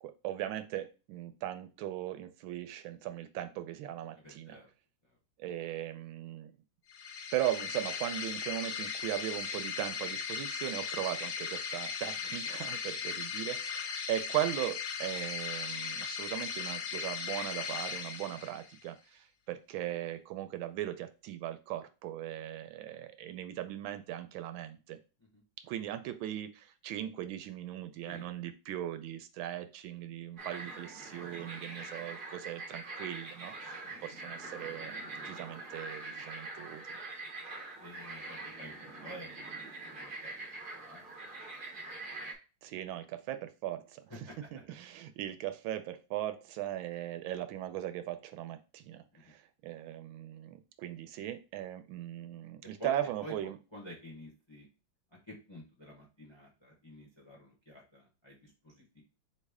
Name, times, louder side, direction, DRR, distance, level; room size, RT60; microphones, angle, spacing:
voice 1, 0.0-4.6 5.4-6.5 7.3-25.0 25.6-35.0 35.2-37.0 42.6-44.2 44.5-53.6, right 13 dB, 90° right, 10 dB, 1.4 m, -38 dB
voice 2, 4.2-4.7 12.2-12.3 25.2-25.4 28.0-28.3 33.8-34.0 37.8-39.3 39.8-40.3 40.7-41.3 44.1-44.5 49.1-49.3 52.8-52.9 53.2-53.3 53.7-54.7 55.1-59.0, equal, 25° left, -1 dB, 0.6 m, -50 dB
sound 1, 6.9-18.8, left 6 dB, 65° left, 0.8 m, -38 dB
sound 2, 30.4-42.3, right 3 dB, 60° right, 0.5 m, -44 dB
4.1 x 3.2 x 3.5 m, 0.32 s
omnidirectional pair, 2.1 m